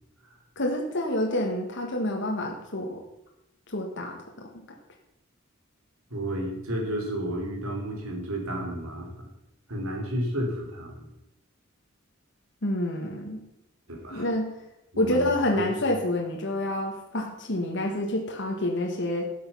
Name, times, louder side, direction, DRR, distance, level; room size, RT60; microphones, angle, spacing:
voice 1, 0.6-3.0 3.7-4.5 12.6-13.4 14.1-14.5 15.0-19.2, left 1 dB, 55° left, 1 dB, 1.7 m, -28 dB
voice 2, 6.1-9.3 9.7-11.1 13.9-14.3 14.9-15.7, right 1 dB, 85° right, 1 dB, 3.4 m, -32 dB
13.0 x 8.6 x 5.6 m, 0.87 s
head